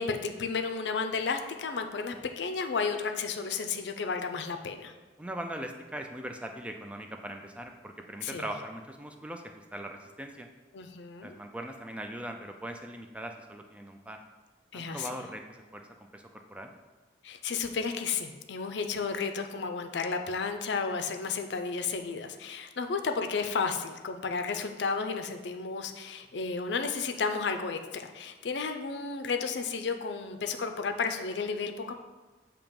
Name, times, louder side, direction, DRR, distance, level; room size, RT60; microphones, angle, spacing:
voice 1, 0.0-4.9 8.2-8.5 10.7-11.4 14.7-15.2 17.2-31.9, left 5 dB, 75° left, 6 dB, 0.5 m, -32 dB
voice 2, 5.2-9.4 9.7-10.5 11.2-14.2 14.7-15.9 16.1-16.7, right 1 dB, 5° right, 4 dB, 0.3 m, -40 dB
7.1 x 2.9 x 5.2 m, 1.2 s
head